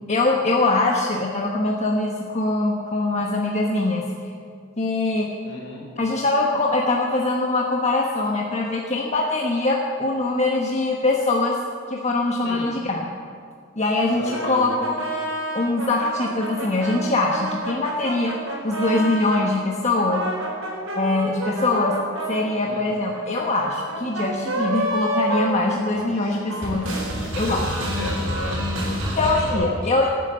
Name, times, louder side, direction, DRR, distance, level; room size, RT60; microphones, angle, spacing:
voice 1, 0.1-4.0 4.8-5.3 6.0-11.6 11.9-13.1 13.8-15.0 15.5-18.4 18.6-20.2 21.0-22.0 22.3-26.9 27.4-27.6 29.2-30.1, left 2 dB, 35° left, -1 dB, 1.2 m, -22 dB
voice 2, 5.4-5.8 12.4-12.7 14.2-14.7 22.6-22.9 25.9-26.4 27.1-29.9, left 1 dB, 60° left, -1 dB, 4.6 m, -35 dB
sound 1, 14.3-19.5 19.9-26.2 26.5-29.5, right 1 dB, 85° right, 4.4 m, -29 dB
17.0 x 9.8 x 7.8 m, 2.3 s
head